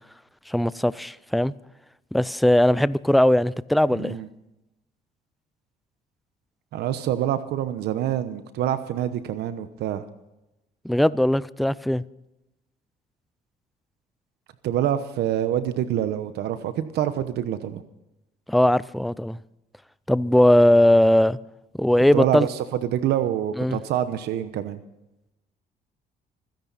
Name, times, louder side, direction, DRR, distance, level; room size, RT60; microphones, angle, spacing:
voice 1, 0.5-1.5 2.1-4.2 10.8-12.0 18.5-19.4 20.1-21.4 21.8-22.5 23.6-23.8, left 1 dB, ahead, 0.5 m, -19 dB
voice 2, 3.9-4.3 6.7-10.0 14.6-17.8 22.1-24.8, right 11 dB, 75° right, 1.0 m, -26 dB
26.5 x 10.5 x 4.1 m
cardioid pair, 100°, 17 cm